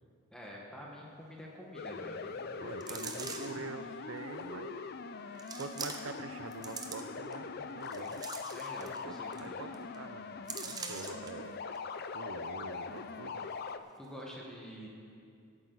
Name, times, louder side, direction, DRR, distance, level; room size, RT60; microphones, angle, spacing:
voice 1, 0.3-2.6 2.9-3.5 8.5-9.6 14.0-14.9, equal, 5° left, -4 dB, 1.4 m, -48 dB
sound 1, 1.7-13.8, left 5 dB, 45° left, 0.4 m, -42 dB
voice 2, 2.6-4.8 5.2-8.3 8.8-11.6 12.1-13.5, right 3 dB, 75° right, 9 dB, 0.7 m, -45 dB
sound 2, 2.8-3.7 4.4-4.5 5.4-6.2 6.5-7.3 7.8-9.0 9.3-9.5 9.7-10.0 10.5-11.3 11.8-11.9, right 5 dB, 20° right, 0.7 m, -43 dB
17.5 x 8.8 x 4.0 m, 2.4 s
head